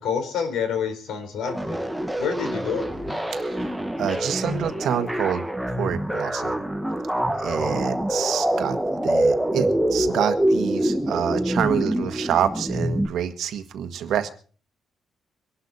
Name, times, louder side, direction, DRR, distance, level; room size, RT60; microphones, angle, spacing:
voice 1, 0.0-1.8 2.2-2.9, left 7 dB, 85° left, 6 dB, 4.0 m, -28 dB
sound 1, 1.5-13.1, right 1 dB, ahead, 0.9 m, -25 dB
voice 2, 3.3-6.6 7.4-8.8 9.0-14.3, right 9 dB, 70° right, 8 dB, 1.5 m, -27 dB
23.5 x 11.5 x 4.2 m, 0.41 s
cardioid pair, 170°, 0 cm